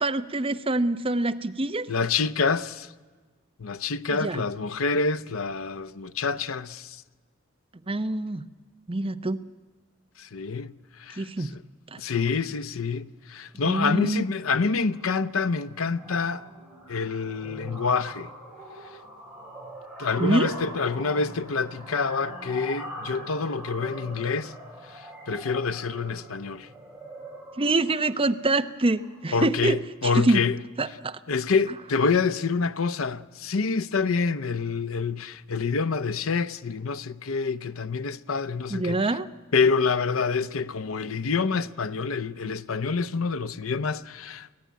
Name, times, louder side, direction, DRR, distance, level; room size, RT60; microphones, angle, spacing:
voice 1, 0.0-1.9 4.1-4.4 7.9-8.4 8.9-9.5 11.2-11.5 11.9-12.0 13.6-14.3 20.2-20.5 27.6-30.4 30.8-31.2 38.7-39.3, right 2 dB, 25° right, 0.8 m, -25 dB
voice 2, 1.9-2.9 3.6-7.0 10.2-10.7 11.0-11.6 12.0-16.4 16.9-18.3 20.0-24.5 25.3-26.7 29.3-30.5 31.3-39.0 39.5-44.5, left 4 dB, 85° left, 0.7 m, -27 dB
sound 1, 14.0-14.1 14.4-14.6 14.9-29.8, right 1 dB, 5° right, 5.9 m, -43 dB
24.5 x 16.5 x 9.4 m
head